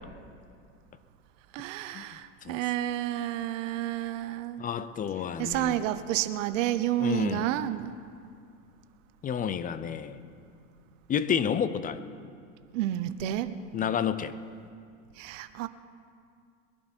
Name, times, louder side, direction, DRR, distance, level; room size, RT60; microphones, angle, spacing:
voice 1, 1.5-4.6 5.4-7.9 12.7-13.5 15.2-15.7, right 13 dB, 70° right, 12 dB, 0.9 m, -30 dB
voice 2, 4.6-5.8 7.0-7.5 9.2-10.2 11.1-12.0 13.7-14.4, left 8 dB, 20° left, 14 dB, 0.5 m, -30 dB
21.5 x 11.0 x 4.5 m, 2.3 s
supercardioid pair, 120°, 39 cm